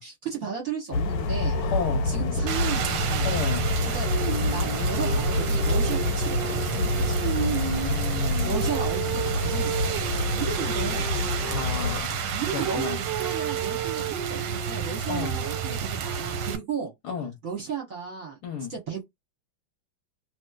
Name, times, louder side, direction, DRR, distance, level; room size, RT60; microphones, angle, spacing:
voice 1, 0.0-1.6 2.0-3.4 3.8-4.1 4.5-7.2 8.4-9.9 10.3-11.1 12.3-16.9 17.4-18.4 18.7-19.0, right 6 dB, 50° right, 1.1 m, -34 dB
sound 1, 0.9-12.0, left 2 dB, 85° left, 1.5 m, -27 dB
voice 2, 1.7-2.1 3.2-3.7 7.8-8.6 11.5-12.2 12.5-13.0 15.1-15.3 17.0-17.3 18.4-18.7, left 5 dB, 65° left, 1.1 m, -32 dB
Rain, 2.5-16.6, right 8 dB, 75° right, 1.2 m, -30 dB
3.0 x 3.0 x 2.3 m
omnidirectional pair, 2.2 m